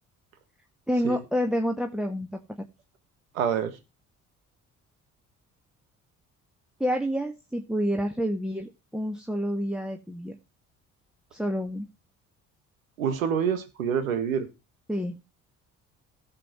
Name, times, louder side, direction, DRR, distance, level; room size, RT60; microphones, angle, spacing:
voice 1, 0.9-2.4 6.8-10.3 11.3-11.9 14.9-15.1, equal, ahead, 3 dB, 1.6 m, -28 dB
voice 2, 3.3-3.7 13.0-14.5, right 7 dB, 85° right, 11 dB, 1.6 m, -26 dB
16.5 x 7.6 x 3.1 m, 0.27 s
hypercardioid pair, 50°, 39 cm